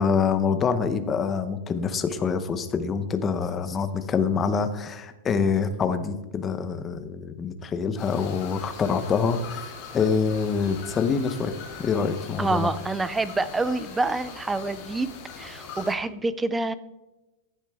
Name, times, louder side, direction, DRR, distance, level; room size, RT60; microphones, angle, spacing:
voice 1, 0.0-11.5 11.8-12.6, left 5 dB, 15° left, 9 dB, 0.8 m, -26 dB
sound 1, 8.0-15.9, left 5 dB, 30° left, 2.7 m, -41 dB
voice 2, 12.4-15.1 15.4-16.7, right 3 dB, 5° right, 15 dB, 0.4 m, -27 dB
15.5 x 10.5 x 3.5 m, 1.1 s
supercardioid pair, 180°, 0 cm